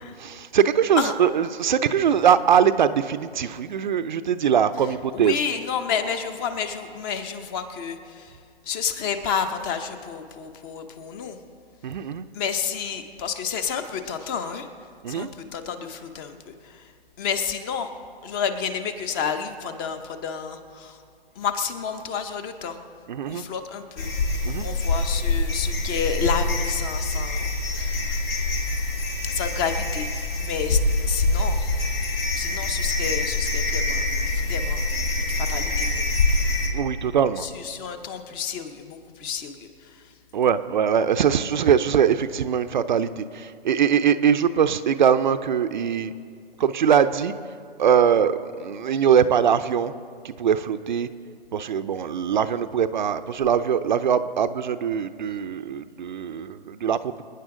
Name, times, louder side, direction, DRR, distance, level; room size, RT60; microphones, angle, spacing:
voice 1, 0.0-5.3 11.8-12.2 15.0-15.3 23.1-23.4 24.4-24.7 36.7-37.5 40.3-46.1 46.6-47.3 47.8-49.9 50.2-51.1 51.5-57.2, right 8 dB, 50° right, 11 dB, 0.6 m, -22 dB
voice 2, 5.1-8.3 8.7-11.4 12.3-14.7 15.1-16.8 17.2-17.9 18.2-21.0 21.4-22.8 23.3-24.1 24.6-28.2 29.2-30.8 31.1-31.8 32.3-34.0 34.3-34.9 35.2-36.1 37.4-39.7, left 6 dB, 20° left, 9 dB, 0.8 m, -30 dB
sound 1, 24.0-36.7, left 2 dB, 70° left, 4.4 m, -25 dB
25.5 x 9.8 x 3.8 m, 2.2 s
hypercardioid pair, 140°, 30 cm